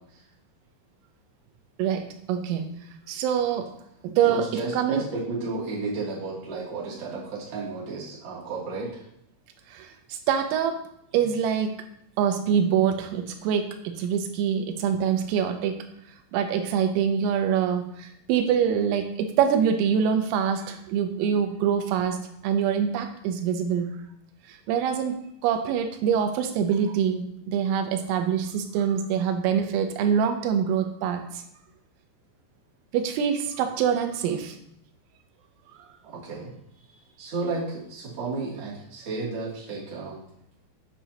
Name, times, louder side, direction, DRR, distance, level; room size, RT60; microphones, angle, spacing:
voice 1, 1.8-2.7 3.1-3.7 4.0-4.4 4.7-5.0 9.7-10.8 11.1-11.7 12.2-15.7 16.3-23.9 24.5-25.2 25.4-31.4 32.9-34.6 35.7-35.8, right 8 dB, 85° right, 6 dB, 3.4 m, -25 dB
voice 2, 4.2-9.0 11.1-11.2 36.0-36.5 36.9-40.2, right 3 dB, 35° right, -7 dB, 2.3 m, -32 dB
8.2 x 7.2 x 2.8 m, 0.74 s
omnidirectional pair, 5.8 m